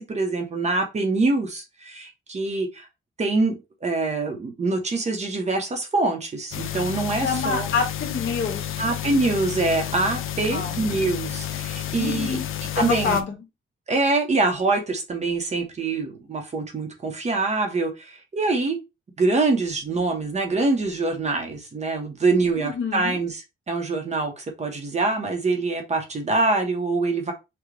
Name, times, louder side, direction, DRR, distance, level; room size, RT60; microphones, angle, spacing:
voice 1, 0.0-2.9 3.2-7.7 8.8-12.4 12.7-13.2 13.9-18.8 19.2-23.3 23.7-27.3, right 3 dB, 35° right, 1.0 m, -24 dB
sound 1, 6.5-13.2, left 11 dB, 75° left, 0.6 m, -31 dB
voice 2, 7.2-8.8 10.5-10.8 12.0-12.4 12.7-13.3 22.6-23.2, left 5 dB, 60° left, 1.7 m, -27 dB
6.0 x 2.4 x 3.3 m
wide cardioid pair, 175°, 21 cm